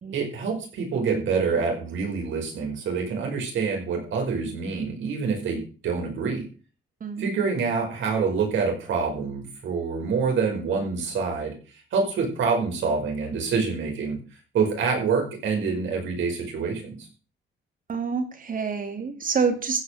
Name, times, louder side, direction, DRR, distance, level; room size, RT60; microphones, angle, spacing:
voice 1, 0.1-6.4 7.2-11.5 11.9-14.2 14.5-17.0, right 5 dB, 75° right, 1 dB, 5.5 m, -26 dB
voice 2, 7.0-7.3 17.9-19.8, right 5 dB, 45° right, 7 dB, 2.7 m, -27 dB
15.0 x 5.5 x 6.7 m, 0.36 s
cardioid pair, 90°, 20 cm